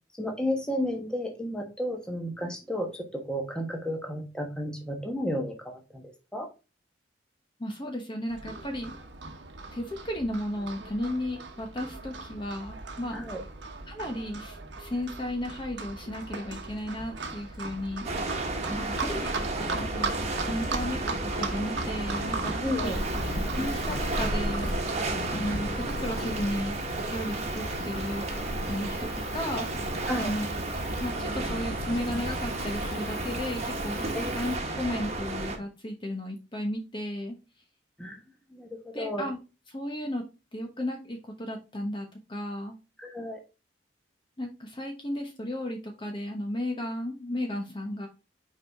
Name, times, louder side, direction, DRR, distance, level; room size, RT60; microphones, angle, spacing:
voice 1, 0.2-6.0 6.3-6.5 13.1-13.4 18.7-19.2 22.6-23.0 30.1-30.3 34.1-34.3 38.0-38.2 38.5-39.3 43.0-43.4, equal, 5° left, 1 dB, 1.2 m, -32 dB
voice 2, 7.6-9.0 9.7-13.2 13.9-18.1 18.8-19.2 19.6-20.2 20.5-22.9 23.6-24.7 25.3-26.8 27.1-29.9 30.2-30.5 31.0-37.3 38.9-39.4 39.7-40.2 40.5-42.8 44.4-48.1, left 1 dB, 25° left, 3 dB, 1.0 m, -34 dB
Livestock farm animals working animals, 8.3-26.4, right 3 dB, 70° right, 1.1 m, -38 dB
sound 1, 18.0-35.6, right 2 dB, 35° right, 1.4 m, -33 dB
Cricket / Motor vehicle (road), 22.8-34.6, left 1 dB, 90° left, 1.2 m, -37 dB
5.8 x 4.8 x 3.6 m, 0.29 s
head